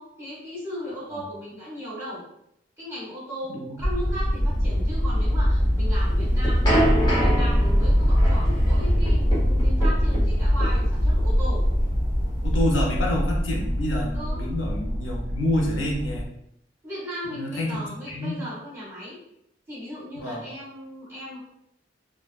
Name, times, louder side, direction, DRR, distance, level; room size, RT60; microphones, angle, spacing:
voice 1, 0.0-2.2 2.8-11.6 14.1-14.4 16.8-19.2 19.7-21.4, equal, 15° right, -9 dB, 1.3 m, -36 dB
sound 1, 3.8-16.2, equal, 50° right, 1.0 m, -23 dB
sound 2, 6.0-12.9, equal, 20° left, 0.9 m, -28 dB
voice 2, 12.4-16.3 17.2-17.8 18.1-18.4 20.2-20.4, left 1 dB, 90° left, -1 dB, 0.6 m, -28 dB
2.6 x 2.1 x 2.4 m, 0.78 s
head